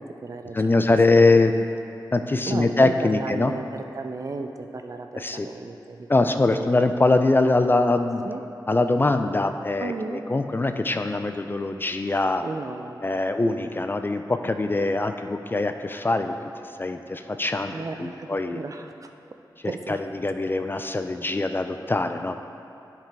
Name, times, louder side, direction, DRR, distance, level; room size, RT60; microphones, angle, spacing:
voice 1, 0.0-1.2 2.4-6.7 8.2-8.4 9.8-10.2 12.4-13.0 17.7-19.1 19.6-20.0, right 3 dB, 45° right, 6 dB, 0.5 m, -35 dB
voice 2, 0.5-1.7 2.1-3.5 5.2-5.5 6.1-8.2 8.7-12.4 13.0-16.3 16.8-18.6 19.9-22.4, left 2 dB, 25° left, 7 dB, 0.4 m, -22 dB
10.5 x 4.8 x 3.5 m, 2.9 s
wide cardioid pair, 70°, 8 cm